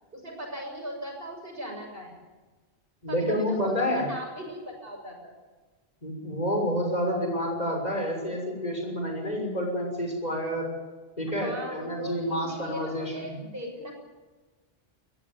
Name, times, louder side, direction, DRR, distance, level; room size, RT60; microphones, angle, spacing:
voice 1, 0.1-2.2 3.1-5.4 11.3-13.9, equal, 60° right, 1 dB, 7.0 m, -38 dB
voice 2, 3.0-4.1 6.0-10.7 11.2-13.4, equal, 40° left, 1 dB, 6.6 m, -29 dB
20.5 x 15.0 x 9.7 m, 1.3 s
omnidirectional pair, 1.1 m